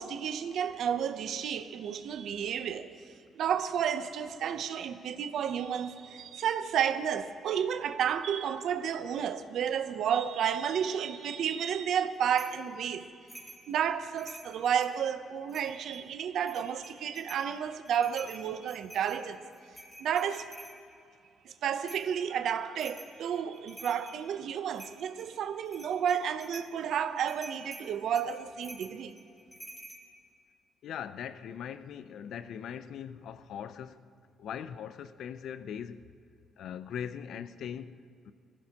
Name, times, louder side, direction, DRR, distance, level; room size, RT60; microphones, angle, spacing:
voice 1, 0.0-2.9 3.3-13.1 13.7-19.4 20.0-20.5 21.4-29.1, right 8 dB, 70° right, 0.6 m, -31 dB
sound 1, 12.4-12.6 13.3-13.7 14.0-15.0 15.5-16.0 16.4-17.5 17.9-20.8 21.9-22.1 22.8-23.2 23.5-24.2 24.7-25.3 25.7-26.7 27.3-30.0, right 1 dB, 10° left, 3.0 m, -48 dB
voice 2, 30.8-34.1 34.4-36.0 36.6-38.3, left 8 dB, 70° left, 0.5 m, -40 dB
20.0 x 15.5 x 2.9 m
cardioid pair, 115°, 0 cm